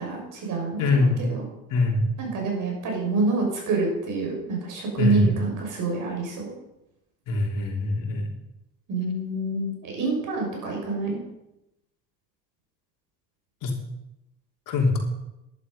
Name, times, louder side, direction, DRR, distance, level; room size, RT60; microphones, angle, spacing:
voice 1, 0.0-1.4 2.2-6.5 8.9-11.2, right 3 dB, 60° right, 0 dB, 6.1 m, -27 dB
voice 2, 0.8-1.2 1.7-2.1 5.0-5.4 7.3-8.3 13.6-13.8 14.7-15.0, left 2 dB, 65° left, 1 dB, 3.4 m, -23 dB
11.5 x 11.0 x 5.4 m, 0.91 s
supercardioid pair, 85°, 35 cm